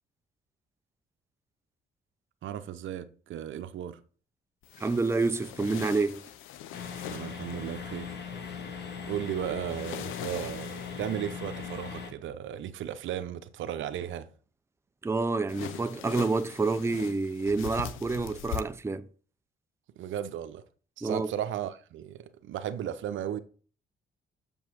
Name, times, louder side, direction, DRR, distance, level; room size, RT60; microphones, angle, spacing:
voice 1, 2.4-4.0 7.0-8.1 9.1-14.3 20.0-20.6 21.0-23.4, right 10 dB, 75° right, 0.8 m, -35 dB
sound 1, 4.6-7.7 9.7-11.2 15.5-18.6, left 11 dB, 90° left, 0.7 m, -41 dB
voice 2, 4.8-6.2 15.0-19.1 21.0-21.3, right 3 dB, 15° right, 0.6 m, -28 dB
sound 2, 6.7-12.1, left 6 dB, 60° left, 2.0 m, -39 dB
7.0 x 5.4 x 6.1 m
cardioid pair, 90°, 20 cm